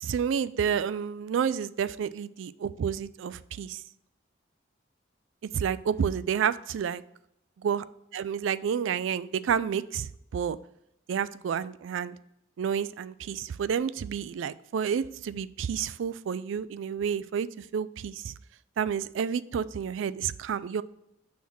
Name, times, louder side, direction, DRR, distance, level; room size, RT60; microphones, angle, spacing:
voice 1, 0.0-3.8 5.5-7.0 7.6-7.8 8.1-10.6 11.1-12.2 12.6-18.3 18.8-20.8, right 7 dB, 70° right, 16 dB, 0.3 m, -30 dB
6.2 x 3.5 x 6.0 m, 0.79 s
head